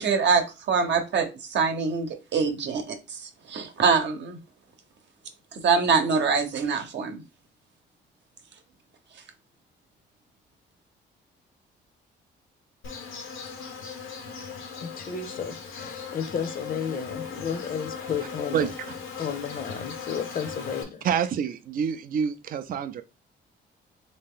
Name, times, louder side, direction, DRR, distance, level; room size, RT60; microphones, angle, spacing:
voice 1, 0.0-4.4 5.5-7.2, right 5 dB, 65° right, 0.9 m, -24 dB
Insect, 12.8-20.8, left 5 dB, 90° left, 0.9 m, -38 dB
voice 2, 14.8-18.7 19.2-21.1, left 7 dB, 45° left, 0.6 m, -32 dB
voice 3, 21.0-23.0, right 7 dB, 45° right, 0.4 m, -27 dB
3.2 x 2.8 x 3.6 m
cardioid pair, 90°, 20 cm